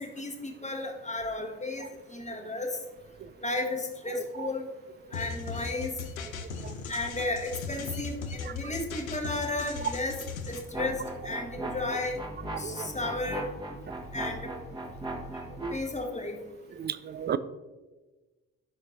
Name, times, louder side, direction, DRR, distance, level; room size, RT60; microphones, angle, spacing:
voice 1, 0.0-2.8 3.4-4.7 5.1-5.9 6.9-10.2 10.5-12.2 12.6-13.5 14.1-14.4 15.7-16.4, left 2 dB, 15° left, 3 dB, 1.2 m, -33 dB
sound 1, 5.1-10.6, left 5 dB, 85° left, 0.6 m, -38 dB
sound 2, 10.7-15.9, right 1 dB, 10° right, 1.2 m, -38 dB
voice 2, 16.8-17.4, right 8 dB, 25° right, 15 dB, 0.4 m, -33 dB
11.5 x 6.0 x 2.7 m, 1.2 s
figure-of-eight pair, 40°, 41 cm